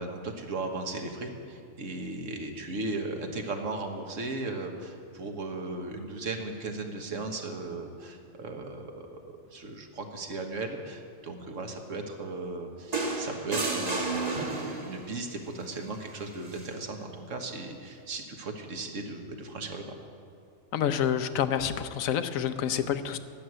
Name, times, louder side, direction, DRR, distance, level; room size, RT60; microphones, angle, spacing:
voice 1, 0.0-19.8, right 2 dB, 70° right, 4 dB, 1.7 m, -37 dB
sound 1, 12.9-15.1 16.5-16.7, right 3 dB, 30° right, 1.4 m, -31 dB
voice 2, 20.7-23.2, left 9 dB, 85° left, 11 dB, 1.1 m, -28 dB
11.5 x 7.9 x 9.9 m, 2.5 s
omnidirectional pair, 1.4 m